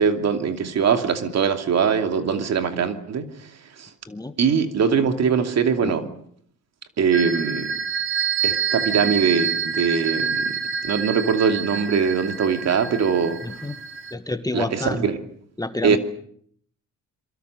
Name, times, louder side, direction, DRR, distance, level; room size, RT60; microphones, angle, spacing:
voice 1, 0.0-3.5 3.8-3.9 4.4-6.1 7.0-7.8 8.4-13.4 14.5-15.2 15.8-16.0, right 6 dB, 60° right, 7 dB, 2.7 m, -22 dB
sound 1, 7.1-14.1, right 6 dB, 40° right, 1.8 m, -27 dB
voice 2, 13.4-13.8 14.1-15.1 15.6-16.0, left 2 dB, 10° left, 9 dB, 1.9 m, -28 dB
27.0 x 23.5 x 6.7 m, 0.64 s
cardioid pair, 90°, 30 cm